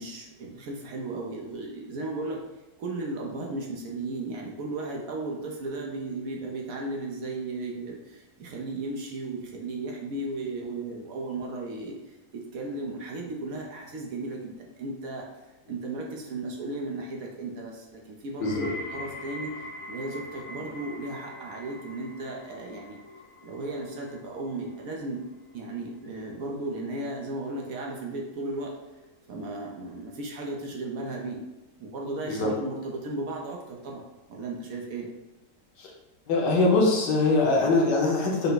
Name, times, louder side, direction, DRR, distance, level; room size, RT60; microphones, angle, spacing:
voice 1, 0.0-2.4 2.8-12.0 12.3-15.3 15.7-19.5 19.9-23.0 23.4-25.2 25.5-28.7 29.3-31.4 31.8-35.1, right 2 dB, 65° right, -1 dB, 1.0 m, -35 dB
sound 1, 18.4-29.5 29.8-30.4 31.1-31.2, left 1 dB, 65° left, 0.9 m, -45 dB
voice 2, 36.3-38.5, left 3 dB, 90° left, -2 dB, 1.6 m, -22 dB
5.5 x 2.1 x 3.9 m, 1.0 s
omnidirectional pair, 1.8 m